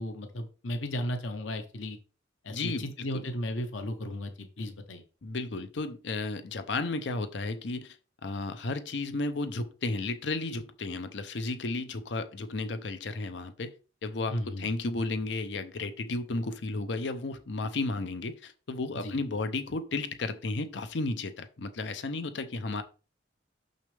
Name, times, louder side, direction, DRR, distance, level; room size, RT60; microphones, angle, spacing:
voice 1, 0.0-2.0 2.4-5.0 14.3-14.7 19.0-19.2, left 1 dB, 85° left, 7 dB, 1.0 m, -35 dB
voice 2, 2.5-3.2 5.2-8.0 8.2-13.7 14.0-22.8, left 3 dB, 65° left, 10 dB, 0.7 m, -33 dB
6.4 x 6.4 x 3.4 m, 0.36 s
head